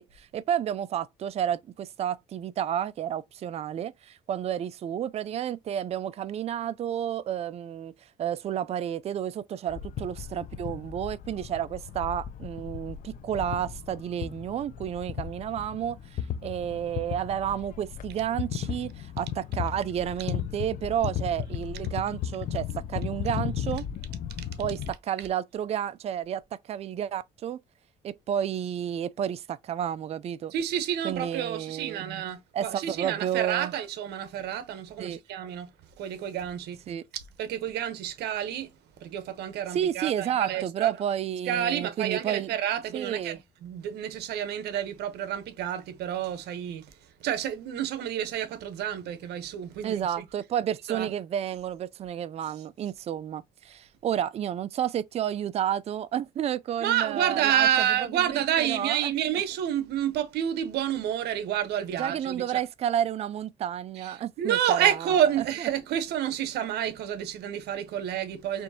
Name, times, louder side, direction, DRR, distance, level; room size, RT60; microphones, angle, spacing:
voice 1, 0.0-7.9 8.2-23.9 24.6-27.6 28.0-30.5 31.0-32.1 32.5-33.7 35.0-35.2 36.9-37.0 39.7-42.5 42.9-43.4 49.8-59.1 62.0-64.9, right 10 dB, 40° right, 0.4 m, -31 dB
sound 1, 9.7-24.9, left 9 dB, 50° left, 0.5 m, -35 dB
voice 2, 30.5-35.7 36.0-36.8 37.4-38.7 39.0-40.9 41.5-46.9 47.2-50.2 50.9-51.1 56.8-62.4 64.0-68.6, right 10 dB, 75° right, 0.9 m, -29 dB
4.3 x 3.1 x 2.7 m
cardioid pair, 110°, 17 cm